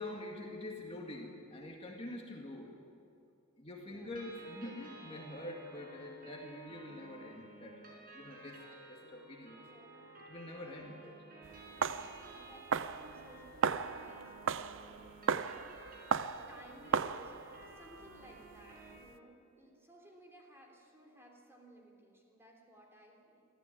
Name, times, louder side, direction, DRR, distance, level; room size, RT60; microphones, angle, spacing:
voice 1, 0.0-2.7 3.6-8.6 8.9-9.7 10.3-11.2, left 1 dB, 30° left, 0 dB, 2.0 m, -45 dB
voice 2, 3.8-4.1 8.3-8.8 9.5-10.1 10.6-10.9 11.7-15.6 16.5-23.5, right 1 dB, 10° right, -1 dB, 3.3 m, -59 dB
sound 1, 4.2-18.9, right 2 dB, 45° right, 5.8 m, -54 dB
sound 2, 11.4-19.1, right 6 dB, 60° right, 0.6 m, -37 dB
23.5 x 14.5 x 8.9 m, 2.5 s
head